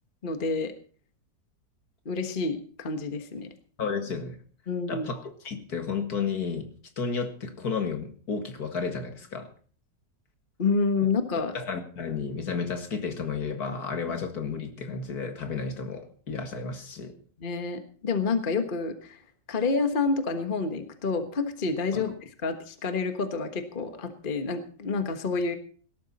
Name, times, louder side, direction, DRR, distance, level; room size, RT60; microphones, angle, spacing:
voice 1, 0.2-0.7 2.0-3.5 4.7-5.1 10.6-11.6 17.4-19.2 19.5-25.6, left 4 dB, 30° left, 8 dB, 1.4 m, -28 dB
voice 2, 3.8-4.4 4.9-6.7 7.0-9.5 11.5-17.1 21.9-22.0, left 5 dB, 60° left, 7 dB, 2.3 m, -32 dB
18.0 x 12.5 x 4.2 m, 0.42 s
omnidirectional pair, 1.9 m